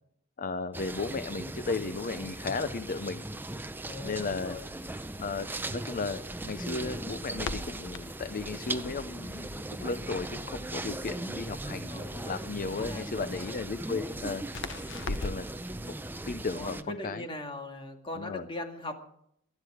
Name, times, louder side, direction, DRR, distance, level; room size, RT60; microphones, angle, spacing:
voice 1, 0.4-3.2 4.0-4.6 5.2-14.4 15.1-15.5 15.9-16.0 16.3-17.2 18.2-18.5, left 4 dB, 40° left, 11 dB, 0.6 m, -35 dB
sound 1, 0.7-16.8, right 1 dB, 10° right, 0.6 m, -38 dB
voice 2, 3.9-4.6 11.9-12.1 12.7-13.6 14.1-14.3 16.5-18.9, left 1 dB, 25° left, 4 dB, 2.1 m, -40 dB
Crackle, 4.0-15.6, left 3 dB, 60° left, 1.1 m, -43 dB
19.0 x 12.0 x 4.9 m, 0.73 s
head